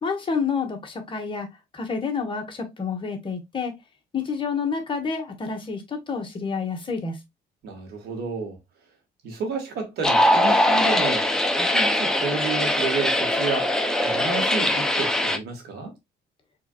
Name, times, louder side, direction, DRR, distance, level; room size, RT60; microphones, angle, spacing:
voice 1, 0.0-1.5 1.7-3.7 4.1-7.2, left 5 dB, 30° left, 1.7 m, -28 dB
voice 2, 7.6-8.6 9.2-15.9, right 4 dB, 75° right, 2.5 m, -31 dB
sound 1, 10.0-15.4, left 1 dB, 5° left, 0.9 m, -21 dB
4.6 x 4.0 x 2.5 m
cardioid pair, 110°, 17 cm